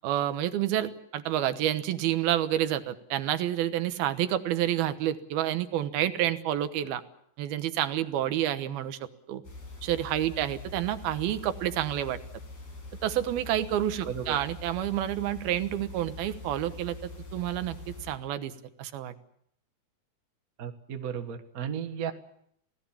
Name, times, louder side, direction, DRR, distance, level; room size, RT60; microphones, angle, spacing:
voice 1, 0.0-7.0 7.4-9.0 9.3-9.4 9.8-12.2 13.0-18.5 18.8-19.1, right 12 dB, 80° right, 11 dB, 3.0 m, -29 dB
sound 1, 9.4-18.1, left 2 dB, 80° left, 8.7 m, -44 dB
voice 2, 14.0-14.4 20.6-22.1, right 8 dB, 55° right, 7 dB, 0.9 m, -34 dB
27.0 x 18.0 x 7.2 m, 0.71 s
omnidirectional pair, 4.3 m